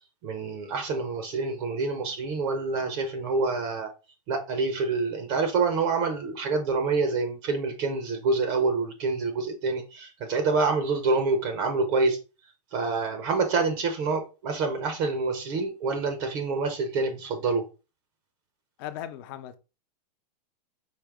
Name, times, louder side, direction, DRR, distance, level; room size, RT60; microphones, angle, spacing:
voice 1, 0.2-3.9 4.3-12.2 12.7-17.6, right 4 dB, 35° right, 0.6 m, -27 dB
voice 2, 18.8-19.6, left 11 dB, 35° left, 0.5 m, -37 dB
5.0 x 2.8 x 3.4 m
supercardioid pair, 155°, 21 cm